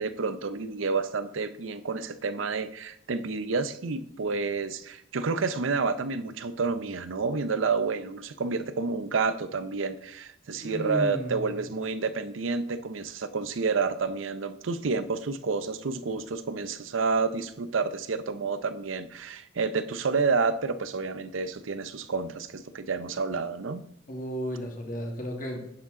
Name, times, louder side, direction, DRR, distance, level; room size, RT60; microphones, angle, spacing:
voice 1, 0.0-23.8, right 4 dB, 85° right, 12 dB, 0.6 m, -29 dB
voice 2, 10.6-11.6 24.1-25.6, equal, 40° left, 1 dB, 1.8 m, -34 dB
9.6 x 7.3 x 3.7 m, 0.73 s
head